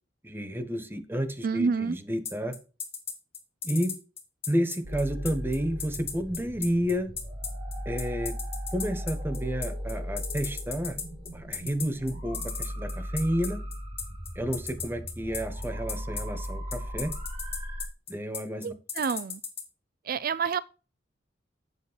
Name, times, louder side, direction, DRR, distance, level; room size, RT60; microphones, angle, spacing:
voice 1, 0.2-2.5 3.6-4.0 4.5-7.1 7.8-8.3 8.7-11.0 11.3-13.6 14.3-17.1 18.1-18.7, equal, 10° right, 1.1 m, -30 dB
voice 2, 1.4-2.0 18.6-19.4 20.0-20.6, right 5 dB, 50° right, 0.4 m, -28 dB
sound 1, 2.3-19.6, left 7 dB, 30° left, 2.3 m, -35 dB
sound 2, 4.8-17.8, equal, 30° right, 4.0 m, -37 dB
8.2 x 7.5 x 4.1 m
head